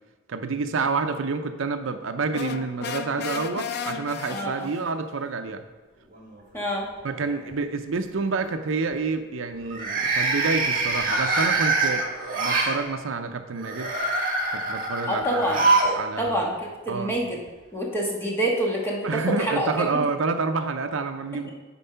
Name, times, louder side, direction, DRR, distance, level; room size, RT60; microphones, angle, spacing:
voice 1, 0.3-5.6 7.0-12.1 12.3-13.9 14.5-15.6 16.0-16.5 16.9-17.2 19.0-21.5, right 4 dB, 70° right, 8 dB, 0.5 m, -28 dB
sound 1, 2.3-5.0, left 6 dB, 50° left, 0.4 m, -34 dB
voice 2, 4.3-4.7 6.5-6.9 15.1-15.7 16.2-17.4 17.7-20.0, right 1 dB, 10° left, -2 dB, 1.4 m, -27 dB
sound 2, 6.1-6.8 7.1-7.5 9.6-12.7 13.6-16.0 16.3-16.4 17.5-17.6, right 3 dB, 45° right, 1.4 m, -24 dB
9.0 x 4.6 x 5.5 m, 1.3 s
head